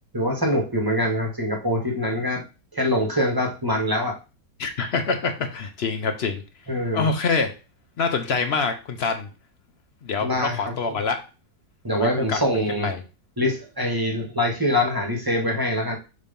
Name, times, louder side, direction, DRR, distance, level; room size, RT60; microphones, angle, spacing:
voice 1, 0.1-2.4 2.7-4.2 6.7-7.1 10.2-11.0 11.8-12.9 13.4-16.0, left 1 dB, 15° right, 1 dB, 1.0 m, -24 dB
voice 2, 4.6-6.4 6.9-7.5 8.0-9.3 10.0-11.2 12.0-13.0, left 4 dB, 60° left, 6 dB, 0.6 m, -25 dB
6.5 x 2.9 x 5.2 m, 0.32 s
omnidirectional pair, 1.9 m